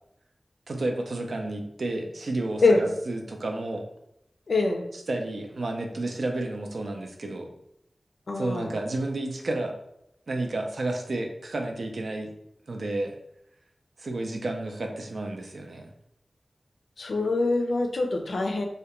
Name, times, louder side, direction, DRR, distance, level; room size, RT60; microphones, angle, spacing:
voice 1, 0.7-3.8 4.9-7.5 8.4-9.7 10.3-12.3 12.7-13.2 14.0-15.9, right 2 dB, 75° right, 3 dB, 0.4 m, -31 dB
voice 2, 4.5-4.9 8.3-8.7 17.0-18.6, left 3 dB, 90° left, 3 dB, 0.3 m, -24 dB
2.3 x 2.1 x 2.8 m, 0.78 s
wide cardioid pair, 85°, 0 cm